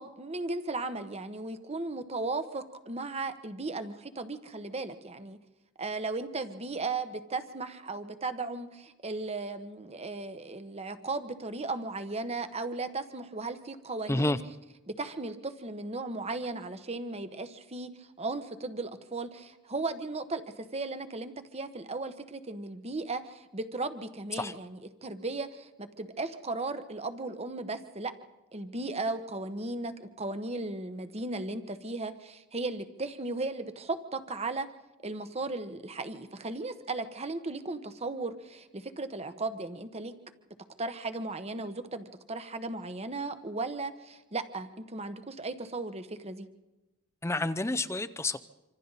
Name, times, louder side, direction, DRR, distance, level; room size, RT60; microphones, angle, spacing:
voice 1, 0.0-5.4 5.8-14.4 14.9-28.1 28.5-34.7 35.0-40.1 40.8-46.5, right 3 dB, 30° right, 10 dB, 1.2 m, -36 dB
voice 2, 14.1-14.4 24.4-24.5 47.2-48.4, left 2 dB, 15° left, 13 dB, 0.6 m, -29 dB
26.5 x 26.0 x 4.1 m, 1.0 s
head